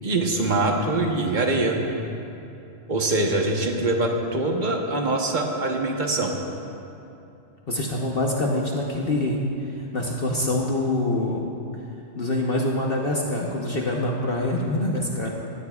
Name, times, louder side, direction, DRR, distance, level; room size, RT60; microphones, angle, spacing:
voice 1, 0.0-1.8 2.9-6.3 14.8-14.9, right 2 dB, 35° right, 1 dB, 1.2 m, -23 dB
voice 2, 7.7-9.4 9.9-11.4 12.2-15.3, left 1 dB, 45° left, -1 dB, 1.1 m, -25 dB
17.0 x 14.0 x 2.4 m, 2.7 s
omnidirectional pair, 1.4 m